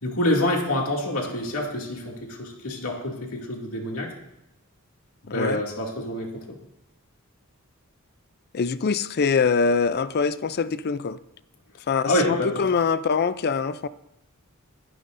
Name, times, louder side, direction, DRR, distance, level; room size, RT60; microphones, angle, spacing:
voice 1, 0.0-4.1 5.3-6.6 12.1-12.5, left 1 dB, 70° left, 0 dB, 2.5 m, -27 dB
voice 2, 5.3-5.6 8.5-11.2 11.9-13.9, left 5 dB, 45° left, 15 dB, 0.4 m, -24 dB
22.0 x 11.0 x 2.6 m, 0.89 s
head